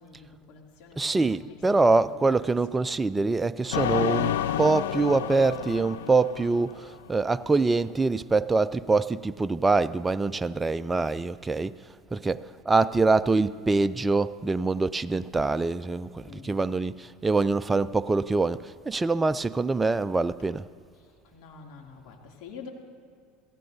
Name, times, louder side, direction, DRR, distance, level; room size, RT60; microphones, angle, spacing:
voice 1, 0.0-2.9 12.5-12.6 16.2-16.7 20.9-22.7, left 5 dB, 65° left, 2.5 m, -48 dB
voice 2, 1.0-11.7 12.1-20.7, right 3 dB, 15° right, 0.3 m, -25 dB
sound 1, 3.7-7.1, left 10 dB, 90° left, 0.5 m, -30 dB
24.5 x 16.0 x 2.7 m
supercardioid pair, 110°, 0 cm